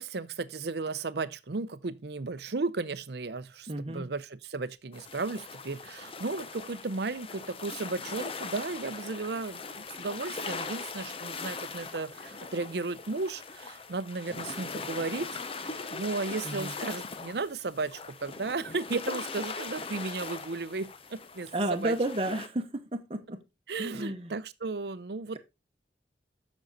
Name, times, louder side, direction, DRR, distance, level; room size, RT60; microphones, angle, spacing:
voice 1, 0.0-21.9 23.7-25.4, right 3 dB, 65° right, 0.6 m, -35 dB
voice 2, 3.7-4.1 16.4-16.7 21.5-23.4 23.8-24.3, right 1 dB, 30° right, 1.0 m, -32 dB
sound 1, 4.9-22.5, left 4 dB, 30° left, 0.7 m, -40 dB
7.7 x 6.3 x 4.0 m
head